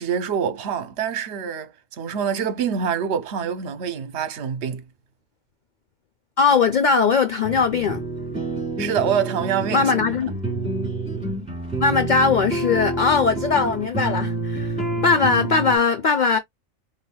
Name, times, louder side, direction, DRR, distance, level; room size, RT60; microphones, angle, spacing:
voice 1, 0.0-4.8 8.8-10.1, right 7 dB, 55° right, 1.1 m, -26 dB
voice 2, 6.4-8.0 9.7-10.4 11.8-14.7 15.0-16.4, left 5 dB, 70° left, 0.4 m, -20 dB
sound 1, 7.4-15.8, right 2 dB, 5° right, 3.5 m, -28 dB
5.4 x 3.3 x 2.2 m
omnidirectional pair, 1.4 m